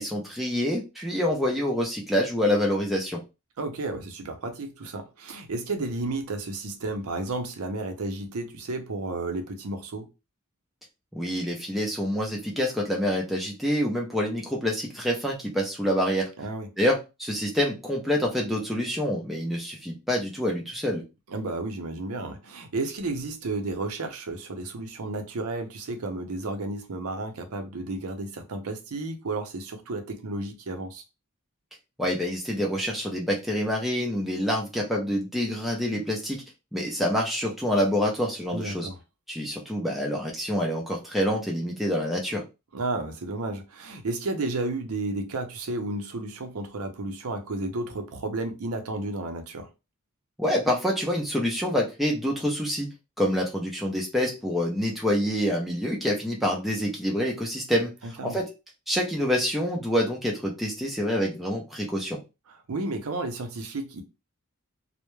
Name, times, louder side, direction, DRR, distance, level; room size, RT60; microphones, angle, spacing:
voice 1, 0.0-3.2 11.1-16.3 16.8-21.0 32.0-36.4 36.7-38.9 39.3-42.4 50.4-52.9 53.2-57.9 58.2-58.5 58.9-62.2, equal, ahead, 0.5 m, -27 dB
voice 2, 3.6-10.1 16.4-16.7 21.3-31.0 38.5-39.0 42.7-49.7 58.0-58.4 62.5-64.0, right 2 dB, 80° right, 0.6 m, -32 dB
2.2 x 2.1 x 3.0 m
head